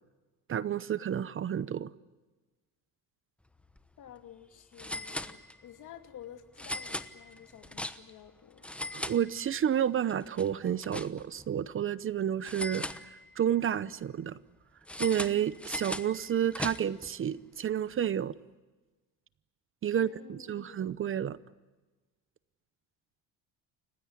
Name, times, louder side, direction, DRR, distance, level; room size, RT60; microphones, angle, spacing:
voice 1, 0.5-1.9 8.9-14.4 15.0-18.3 19.8-21.4, right 9 dB, 35° right, 0.7 m, -30 dB
sound 1, 3.6-3.8 4.1-4.2 4.8-5.8 6.6-8.3 8.6-9.8 10.1-11.5 12.4-13.5 14.9-17.1, left 1 dB, 5° left, 1.0 m, -39 dB
voice 2, 4.0-8.7 19.9-20.8, left 10 dB, 55° left, 2.6 m, -51 dB
29.0 x 16.5 x 9.7 m
cardioid pair, 135°, 36 cm